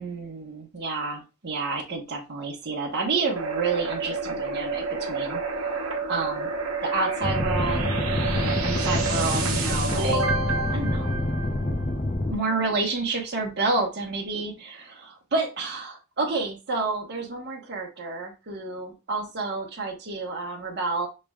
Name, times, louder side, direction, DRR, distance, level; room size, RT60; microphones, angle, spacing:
voice 1, 0.0-5.4 6.1-6.5 6.8-7.9 8.3-10.2 10.7-11.2 12.3-21.1, right 3 dB, 50° right, 1.2 m, -29 dB
sound 1, 3.4-12.0, right 4 dB, 70° right, 1.1 m, -29 dB
sound 2, 7.2-12.3, left 1 dB, 30° left, 0.6 m, -27 dB
6.8 x 3.2 x 2.4 m
head